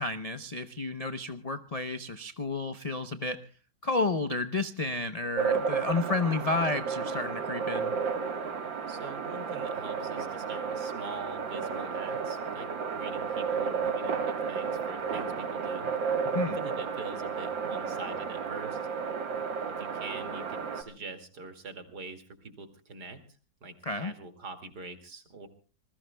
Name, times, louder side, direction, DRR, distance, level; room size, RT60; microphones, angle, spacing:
voice 1, 0.0-3.4 3.8-7.9 16.2-16.6 23.8-24.1, left 3 dB, 45° left, 9 dB, 0.4 m, -31 dB
sound 1, 5.4-20.8, right 6 dB, 85° right, 2.3 m, -32 dB
voice 2, 8.9-12.7 12.9-15.9 16.5-18.9 19.8-23.2 23.6-25.5, right 3 dB, 60° right, 7 dB, 2.8 m, -44 dB
27.0 x 21.0 x 2.2 m, 0.36 s
omnidirectional pair, 2.0 m